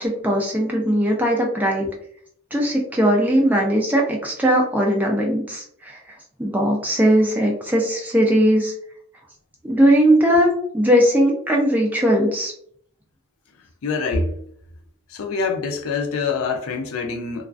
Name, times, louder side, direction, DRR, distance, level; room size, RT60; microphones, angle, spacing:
voice 1, 0.0-1.9 2.5-6.0 6.4-8.7 9.6-12.5, equal, 5° right, 0.4 m, -19 dB
voice 2, 13.8-14.4 15.1-17.5, left 4 dB, 70° left, 0.4 m, -25 dB
2.3 x 2.3 x 2.3 m
head